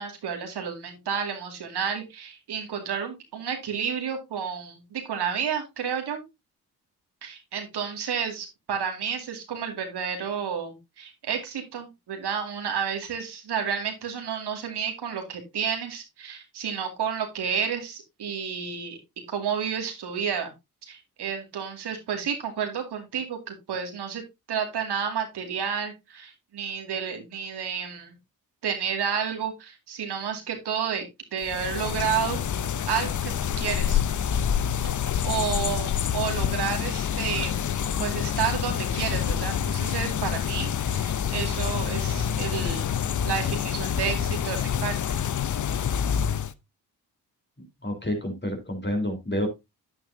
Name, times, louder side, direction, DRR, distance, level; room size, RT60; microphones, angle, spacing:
voice 1, 0.0-6.2 7.2-19.0 19.3-20.5 20.8-24.2 24.5-28.2 28.6-31.1 31.3-32.4 32.9-33.3 33.6-34.0 34.8-35.0 35.2-37.6 38.0-42.9 43.2-45.2, right 7 dB, 65° right, 4 dB, 2.4 m, -31 dB
sound 1, 31.4-46.5, left 8 dB, 45° left, 0.8 m, -27 dB
voice 2, 47.8-49.5, left 1 dB, 25° left, 3 dB, 3.9 m, -29 dB
9.2 x 8.9 x 2.7 m, 0.22 s
hypercardioid pair, 40°, 42 cm